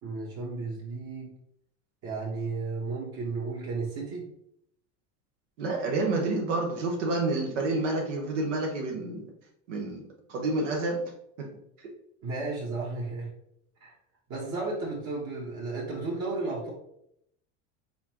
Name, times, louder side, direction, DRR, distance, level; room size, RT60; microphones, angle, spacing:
voice 1, 0.0-1.3 2.0-4.3 12.2-13.3 13.8-13.9 14.3-16.7, right 3 dB, 50° right, -5 dB, 1.4 m, -33 dB
voice 2, 5.6-9.3 9.7-10.0 10.3-11.0 11.4-11.5, right 2 dB, 90° right, 0 dB, 1.0 m, -29 dB
4.2 x 3.8 x 2.9 m, 0.75 s
supercardioid pair, 100°, 35 cm